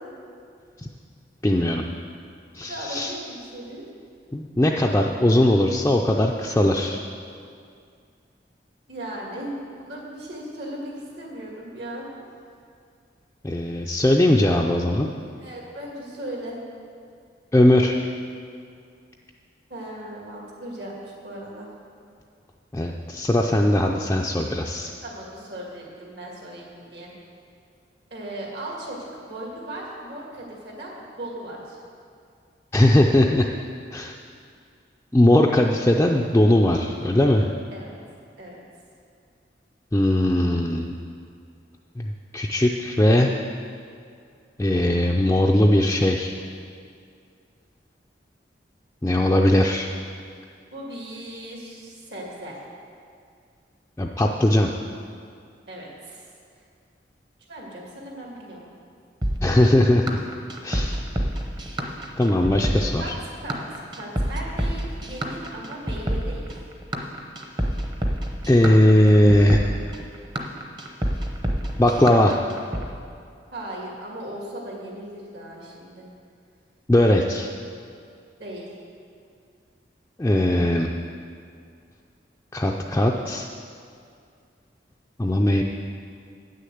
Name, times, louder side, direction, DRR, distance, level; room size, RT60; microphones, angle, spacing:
voice 1, 1.4-1.9 2.5-3.1 4.3-7.0 13.4-15.1 17.5-18.0 22.7-24.9 32.7-33.5 33.9-34.1 35.1-37.5 39.9-40.9 42.0-43.3 44.6-46.3 49.0-49.9 54.0-54.7 59.4-60.2 60.6-61.0 62.2-63.1 68.5-69.6 71.8-72.4 76.9-77.5 80.2-80.9 82.5-83.5 85.2-85.6, left 1 dB, 15° left, -1 dB, 0.4 m, -19 dB
voice 2, 2.7-3.8 8.9-12.1 15.4-16.6 19.7-21.7 25.0-27.1 28.1-31.8 37.7-37.9 38.4-38.6 50.7-52.6 55.7-56.2 57.5-58.6 63.0-63.1 63.4-66.5 73.5-76.1 78.4-78.7, right 1 dB, 70° right, -2 dB, 2.3 m, -37 dB
sound 1, 59.2-72.9, equal, 25° right, 0.8 m, -28 dB
9.0 x 6.6 x 7.8 m, 2.3 s
head